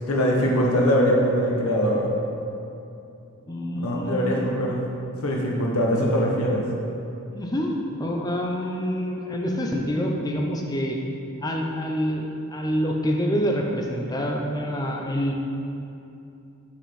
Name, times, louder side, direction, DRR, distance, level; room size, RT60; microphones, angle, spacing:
voice 1, 0.0-2.1 3.8-4.8 5.2-6.7, equal, 70° left, -1 dB, 0.9 m, -22 dB
voice 2, 3.5-4.5 7.3-7.7 8.0-11.0 11.4-12.2 12.5-15.3, equal, 15° left, 1 dB, 0.5 m, -26 dB
5.9 x 5.8 x 4.2 m, 2.7 s
head